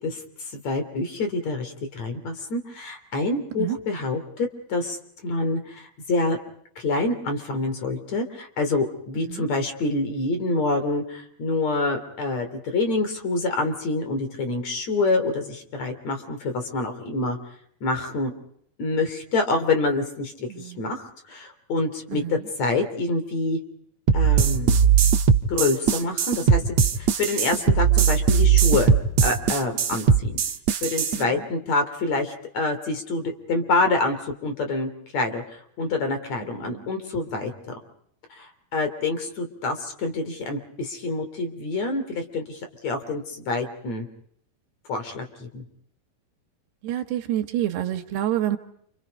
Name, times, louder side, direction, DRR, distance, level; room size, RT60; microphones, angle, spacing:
voice 1, 0.0-5.0 5.2-6.4 6.8-17.4 17.8-18.3 18.8-23.6 24.1-24.8 25.5-29.0 29.2-30.4 30.8-37.7 38.3-44.1 44.9-45.6, left 3 dB, 45° left, 7 dB, 4.1 m, -27 dB
voice 2, 20.5-20.9 22.1-22.4 31.3-31.4 36.6-36.8 46.8-48.6, right 12 dB, 85° right, 7 dB, 3.6 m, -28 dB
sound 1, 24.1-31.2, right 7 dB, 55° right, 2.1 m, -19 dB
29.0 x 28.5 x 5.3 m, 0.68 s
omnidirectional pair, 4.6 m